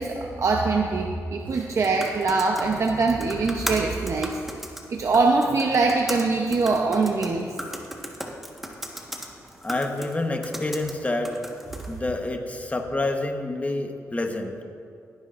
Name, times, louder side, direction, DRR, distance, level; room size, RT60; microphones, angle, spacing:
voice 1, 0.0-4.4 4.9-7.5, right 3 dB, 55° right, 1 dB, 0.8 m, -23 dB
sound 1, 1.4-12.0, equal, 5° right, 1.4 m, -37 dB
voice 2, 9.6-11.4 11.9-14.5, left 2 dB, 25° left, 4 dB, 1.1 m, -28 dB
17.0 x 9.8 x 2.5 m, 2.4 s
cardioid pair, 65°, 6 cm